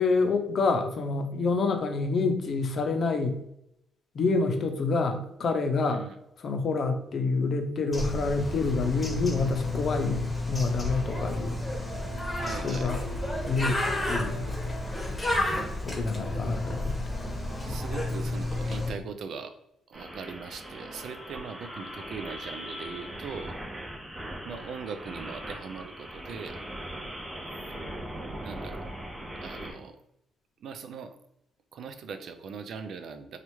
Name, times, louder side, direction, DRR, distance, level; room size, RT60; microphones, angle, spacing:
voice 1, 0.0-3.4 4.1-6.0 6.4-11.6 12.6-13.0 13.5-13.8 14.1-14.5 15.8-16.9, left 3 dB, 55° left, 5 dB, 0.6 m, -27 dB
voice 2, 5.9-6.2 12.4-12.9 17.7-19.5 19.9-23.6 24.4-26.6 28.4-28.8 29.4-30.0 30.6-31.1 31.7-33.4, right 5 dB, 65° right, 9 dB, 0.4 m, -40 dB
Bird, 7.9-18.9, left 2 dB, 15° left, 1.2 m, -31 dB
sound 1, 19.9-29.7, right 1 dB, 25° right, 1.4 m, -40 dB
4.2 x 2.4 x 3.1 m, 0.80 s
cardioid pair, 90°, 0 cm